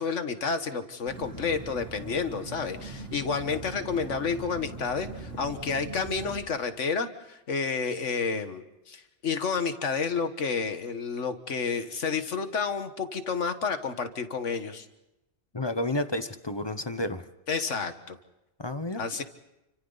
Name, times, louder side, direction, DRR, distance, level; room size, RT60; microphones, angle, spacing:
voice 1, 0.0-14.9 17.5-18.2 19.0-19.2, left 5 dB, 90° left, 9 dB, 1.8 m, -30 dB
sound 1, 1.0-6.4, right 2 dB, 80° right, 5.0 m, -41 dB
voice 2, 15.5-17.2 18.6-19.0, left 1 dB, 25° left, 10 dB, 0.9 m, -31 dB
29.5 x 25.0 x 4.0 m, 0.93 s
omnidirectional pair, 1.2 m